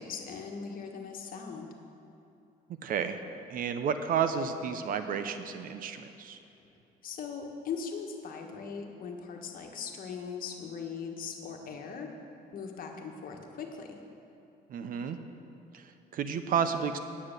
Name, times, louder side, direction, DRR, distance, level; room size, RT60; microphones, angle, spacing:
voice 1, 0.0-1.7 7.0-12.1 12.5-14.0, left 6 dB, 55° left, 3 dB, 1.4 m, -40 dB
voice 2, 2.8-3.2 3.5-6.4 14.7-15.2 15.7-17.0, right 7 dB, 55° right, 9 dB, 0.7 m, -31 dB
9.6 x 8.5 x 6.7 m, 2.7 s
cardioid pair, 110°, 17 cm